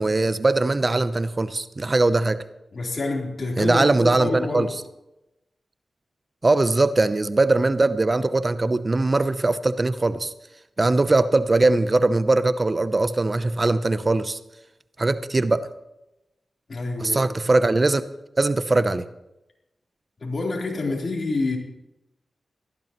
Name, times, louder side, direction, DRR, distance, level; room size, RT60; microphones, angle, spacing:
voice 1, 0.0-2.4 3.6-4.7 6.4-10.3 10.8-14.4 15.0-15.7 17.0-18.1 18.4-19.1, right 2 dB, 40° right, 13 dB, 0.7 m, -21 dB
voice 2, 2.7-4.7 16.7-17.3 20.2-21.6, left 2 dB, 55° left, -1 dB, 3.8 m, -27 dB
18.0 x 14.0 x 3.1 m, 0.92 s
cardioid pair, 45°, 0 cm